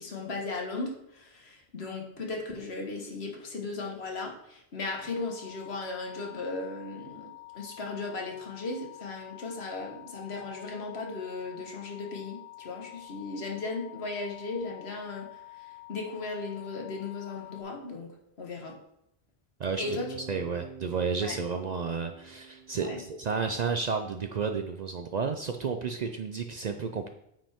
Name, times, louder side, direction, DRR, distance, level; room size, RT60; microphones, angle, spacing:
voice 1, 0.0-18.7 19.8-20.1 21.2-21.4 22.8-23.0, left 3 dB, 75° left, 1 dB, 1.6 m, -37 dB
sound 1, 4.9-17.6, left 20 dB, 15° left, 0.6 m, -48 dB
voice 2, 19.6-27.1, right 5 dB, 55° right, 6 dB, 0.5 m, -32 dB
Bass guitar, 19.8-23.8, right 4 dB, 15° right, 0.9 m, -47 dB
8.8 x 5.1 x 3.5 m, 0.79 s
omnidirectional pair, 1.1 m